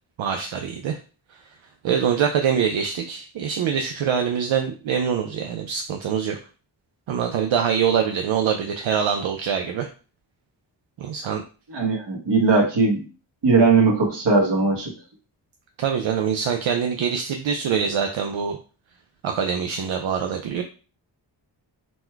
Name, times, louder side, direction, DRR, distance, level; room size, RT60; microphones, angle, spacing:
voice 1, 0.2-1.0 1.8-6.4 7.1-9.9 11.0-11.4 15.8-18.6 19.2-20.6, right 7 dB, 85° right, 4 dB, 0.6 m, -24 dB
voice 2, 11.7-13.0 13.4-14.9, right 4 dB, 65° right, 0 dB, 1.4 m, -19 dB
4.2 x 2.2 x 4.5 m, 0.36 s
wide cardioid pair, 80°, 45 cm